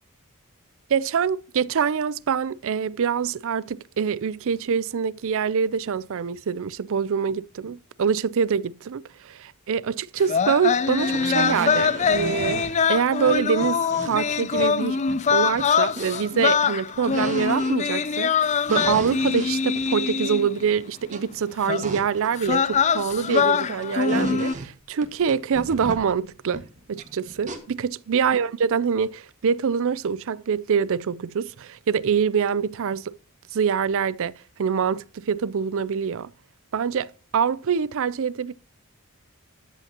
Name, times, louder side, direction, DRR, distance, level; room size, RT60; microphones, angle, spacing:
voice 1, 0.9-15.0 15.3-33.2 33.5-34.3 34.6-36.3 36.7-38.5, right 6 dB, 60° right, 0.4 m, -25 dB
sound 1, 10.2-20.6 21.7-21.9 22.4-24.5, left 6 dB, 30° left, 0.4 m, -23 dB
sound 2, 10.4-10.5 10.9-12.7 13.3-14.8 15.1-16.5 16.9-18.0 18.5-20.7 21.1-21.4 21.6-23.5 23.7-24.7 25.0-27.6, right 2 dB, 35° right, 1.6 m, -35 dB
13.0 x 8.3 x 2.9 m
head